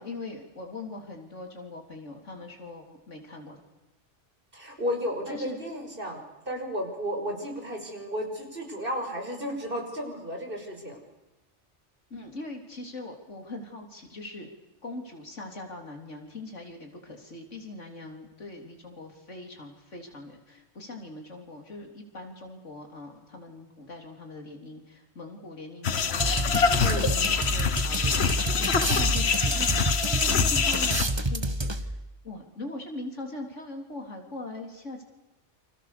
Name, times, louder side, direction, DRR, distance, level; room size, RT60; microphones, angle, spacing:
voice 1, 0.0-3.6 5.3-5.6 12.1-14.5 14.8-29.8 30.0-32.0 32.2-35.0, left 2 dB, 90° left, 3 dB, 4.0 m, -41 dB
voice 2, 4.5-11.0 26.8-27.2, equal, 50° right, 2 dB, 5.9 m, -33 dB
sound 1, 25.8-31.0, left 6 dB, 60° left, 1.4 m, -25 dB
sound 2, 26.2-32.1, right 1 dB, 25° right, 1.4 m, -29 dB
29.0 x 26.5 x 6.9 m, 1.0 s
omnidirectional pair, 1.2 m